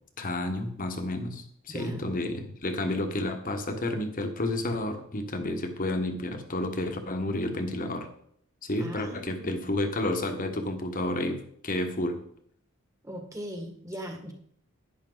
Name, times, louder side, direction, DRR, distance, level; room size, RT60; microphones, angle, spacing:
voice 1, 0.2-8.1 8.6-12.2, left 1 dB, 40° left, 6 dB, 1.4 m, -31 dB
voice 2, 1.7-2.0 8.8-9.7 13.0-14.3, equal, 15° right, 3 dB, 1.8 m, -39 dB
11.0 x 10.5 x 4.0 m, 0.64 s
head